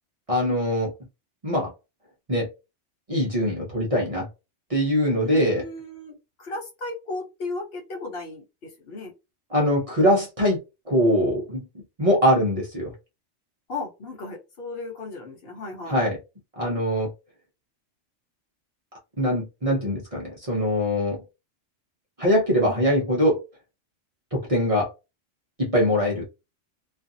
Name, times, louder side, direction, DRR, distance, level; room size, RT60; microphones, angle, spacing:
voice 1, 0.3-0.9 1.4-1.7 2.3-2.5 3.1-4.3 4.7-5.6 9.5-10.6 10.9-11.6 12.0-12.9 15.9-16.2 16.6-17.1 19.2-21.2 22.2-23.4 24.3-24.9 25.6-26.2, equal, 35° right, 0.7 m, -22 dB
voice 2, 5.2-9.1 13.7-16.0 22.6-22.8, left 3 dB, 55° left, 1.0 m, -35 dB
2.5 x 2.4 x 2.6 m
omnidirectional pair, 1.3 m